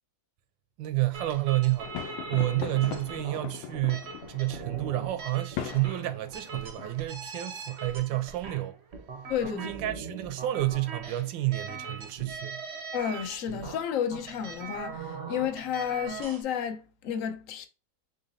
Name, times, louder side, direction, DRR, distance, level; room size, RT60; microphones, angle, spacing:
voice 1, 0.8-8.8 9.5-12.6, right 17 dB, 80° right, 1.2 m, -30 dB
sound 1, 1.1-16.4, right 5 dB, 55° right, 0.7 m, -41 dB
sound 2, 1.8-7.1, left 11 dB, 85° left, 1.3 m, -40 dB
voice 2, 9.3-9.7 12.9-17.7, left 8 dB, 65° left, 0.8 m, -31 dB
4.0 x 3.9 x 2.6 m
omnidirectional pair, 2.1 m